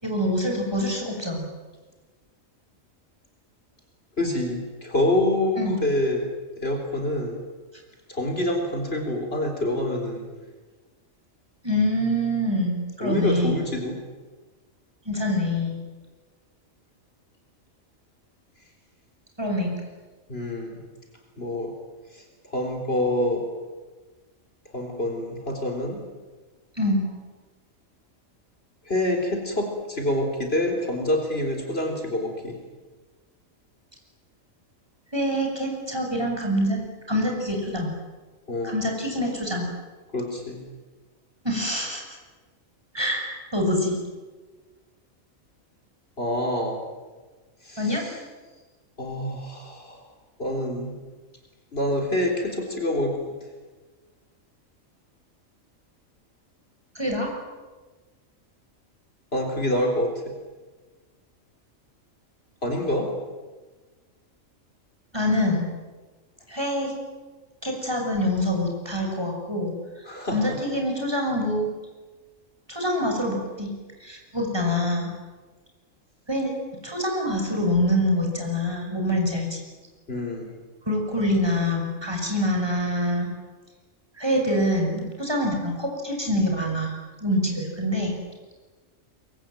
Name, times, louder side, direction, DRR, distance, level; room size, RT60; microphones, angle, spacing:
voice 1, 0.0-1.5 5.6-5.8 11.6-13.6 15.0-15.8 19.4-19.8 26.8-27.0 35.1-36.8 37.1-37.9 38.6-39.7 41.4-42.2 42.9-44.0 47.8-48.0 56.9-57.3 65.1-65.7 66.5-66.9 67.6-69.7 70.3-71.7 72.7-73.7 74.0-75.1 76.3-76.5 76.8-79.6 80.9-83.3 84.1-86.9 87.2-88.2, left 1 dB, 20° right, 1 dB, 6.6 m, -25 dB
voice 2, 4.2-6.3 6.6-7.4 8.1-10.3 13.0-14.0 20.3-20.8 21.4-21.7 22.1-22.2 22.5-23.5 24.7-26.0 28.9-32.6 38.5-38.8 40.1-40.6 46.2-46.8 47.6-48.2 49.0-50.0 50.4-51.0 51.7-53.2 59.3-60.3 62.6-63.1 70.1-70.6 80.1-80.5, left 1 dB, 50° left, 2 dB, 4.2 m, -26 dB
24.0 x 23.0 x 9.3 m, 1.3 s
omnidirectional pair, 1.4 m